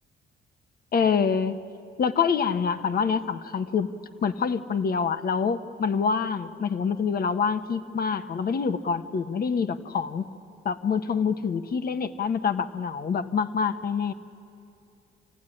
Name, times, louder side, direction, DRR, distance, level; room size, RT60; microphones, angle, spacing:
voice 1, 0.9-1.6 2.0-3.9 4.2-10.3 10.6-14.1, left 6 dB, 50° left, 10 dB, 1.1 m, -26 dB
26.5 x 15.5 x 9.9 m, 2.6 s
cardioid pair, 90°, 20 cm